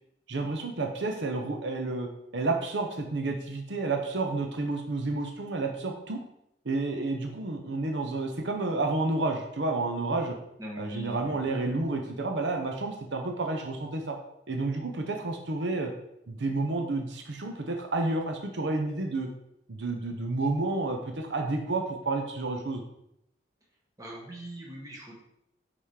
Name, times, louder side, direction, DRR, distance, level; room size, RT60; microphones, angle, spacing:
voice 1, 0.3-6.2 6.6-10.4 10.8-14.2 14.5-15.9 16.3-19.3 19.7-22.8, right 2 dB, 75° right, 4 dB, 0.8 m, -30 dB
voice 2, 10.6-11.4 24.0-25.1, right 1 dB, 20° right, -2 dB, 1.6 m, -41 dB
5.7 x 5.0 x 4.8 m, 0.81 s
head